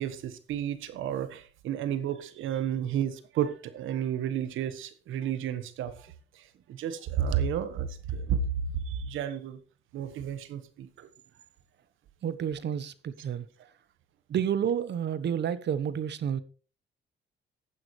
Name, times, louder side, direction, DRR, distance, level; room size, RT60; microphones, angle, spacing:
voice 1, 0.0-9.6 9.9-11.1, right 8 dB, 85° right, 1.4 m, -32 dB
voice 2, 12.2-13.5 14.3-16.4, right 8 dB, 60° right, 1.1 m, -30 dB
15.0 x 9.5 x 3.2 m
cardioid pair, 90°, 20 cm